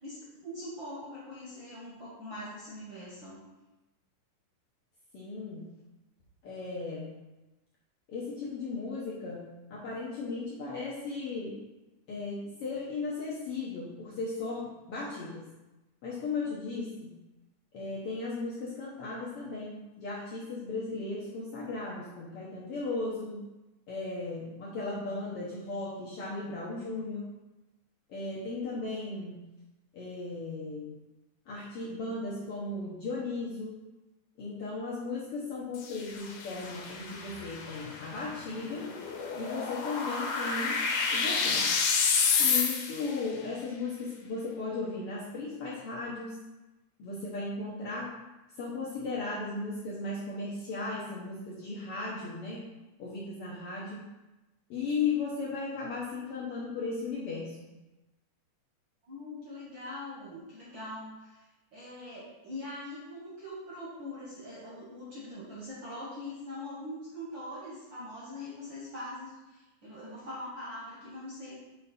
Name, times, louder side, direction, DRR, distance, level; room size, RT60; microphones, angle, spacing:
voice 1, 0.0-3.4 59.0-61.4 61.7-71.6, left 1 dB, 55° right, -7 dB, 1.4 m, -42 dB
voice 2, 5.1-5.7 6.4-7.2 8.1-11.6 12.1-15.5 16.0-17.2 17.7-23.5 23.9-27.3 28.1-29.4 29.9-30.9 31.5-33.8 34.4-38.9 39.3-40.8 41.1-41.7 42.4-46.4 47.0-48.2 48.6-52.6 53.0-54.1 54.7-57.7, left 3 dB, 65° left, -6 dB, 1.5 m, -36 dB
sound 1, 35.8-43.2, left 5 dB, 85° left, 2.3 m, -30 dB
6.6 x 3.8 x 4.2 m, 1.0 s
omnidirectional pair, 3.7 m